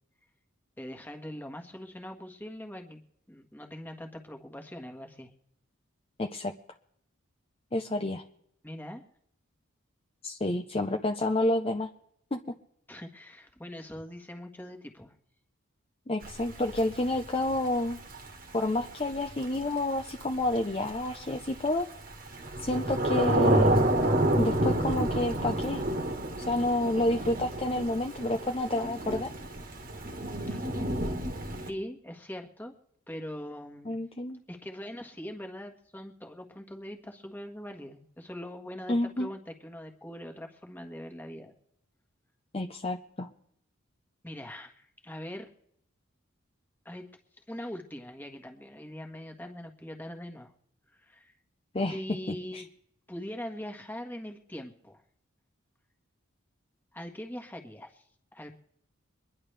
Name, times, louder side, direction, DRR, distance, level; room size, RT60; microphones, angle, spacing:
voice 1, 0.8-3.0 3.3-5.3 8.6-9.0 12.9-15.1 30.5-30.7 31.6-32.7 33.1-34.0 34.5-41.5 44.2-45.5 46.8-47.1 47.5-50.5 50.9-51.3 51.9-52.7 53.1-55.0 56.9-58.0 58.3-58.5, equal, 10° left, 3 dB, 1.5 m, -42 dB
voice 2, 6.2-6.5 7.7-8.2 10.2-11.9 12.3-12.4 16.1-18.0 18.5-21.9 22.6-23.9 24.4-25.8 26.5-29.3 33.9-34.4 38.9-39.3 42.5-43.3 51.7-52.0 52.3-52.6, left 1 dB, 25° left, 4 dB, 0.6 m, -29 dB
Thunder / Rain, 16.2-31.7, right 1 dB, 40° right, 1.5 m, -29 dB
24.5 x 11.0 x 3.4 m, 0.70 s
head